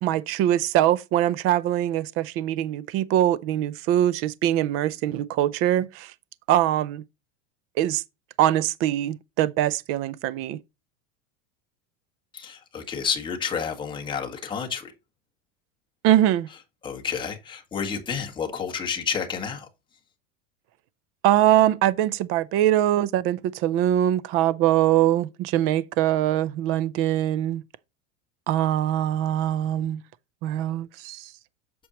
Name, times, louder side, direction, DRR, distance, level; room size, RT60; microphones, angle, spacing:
voice 1, 0.0-6.1 6.5-7.0 7.8-8.0 8.4-10.6 16.0-16.5 21.2-27.6 28.5-30.0 30.4-31.3, right 12 dB, 35° right, 0.5 m, -23 dB
voice 2, 12.3-14.9 16.8-19.7, left 6 dB, 10° left, 1.4 m, -30 dB
8.3 x 6.2 x 2.9 m
supercardioid pair, 155°, 39 cm